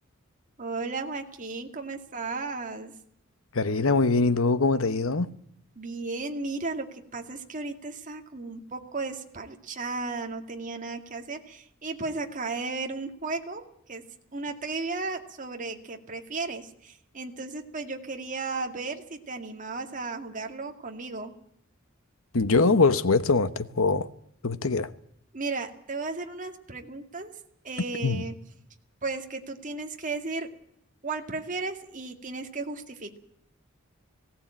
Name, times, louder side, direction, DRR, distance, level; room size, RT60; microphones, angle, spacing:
voice 1, 0.6-2.9 5.8-14.0 14.3-21.3 25.3-27.3 27.6-28.3 29.0-30.5 31.0-33.2, right 3 dB, 40° right, 2.1 m, -35 dB
voice 2, 3.5-5.3 22.3-24.1 24.4-24.9 28.0-28.2, left 3 dB, 80° left, 1.0 m, -23 dB
18.5 x 17.0 x 8.8 m
head